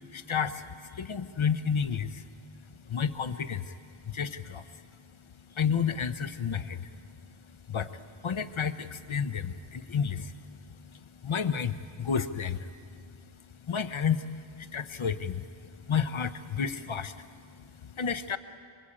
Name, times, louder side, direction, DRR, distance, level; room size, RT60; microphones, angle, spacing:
voice 1, 0.1-2.2 2.9-3.8 4.1-4.8 5.5-7.1 7.4-13.1 13.6-18.4, left 7 dB, 75° left, 11 dB, 1.0 m, -32 dB
26.0 x 24.5 x 8.8 m, 2.3 s
wide cardioid pair, 50°, 49 cm